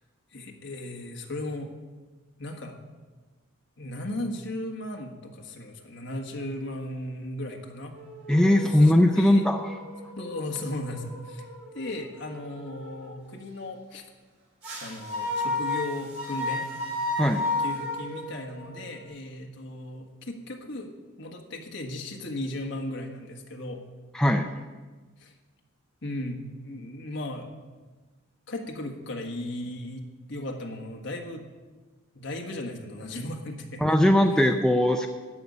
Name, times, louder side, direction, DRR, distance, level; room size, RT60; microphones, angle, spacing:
voice 1, 0.3-1.7 2.4-2.8 3.8-7.9 8.7-9.5 10.2-11.5 11.7-14.0 14.8-16.7 17.6-20.9 21.2-23.8 25.2-25.3 26.0-27.5 28.5-31.4 32.1-34.0 34.3-34.4, left 1 dB, 55° left, 3 dB, 1.6 m, -36 dB
sound 1, 7.9-13.1 14.6-19.1, left 2 dB, 60° right, 4.7 m, -34 dB
voice 2, 8.3-9.7 17.2-17.4 24.1-24.5 33.8-35.1, left 1 dB, 5° left, 4 dB, 0.4 m, -20 dB
14.0 x 5.4 x 9.5 m, 1.3 s
head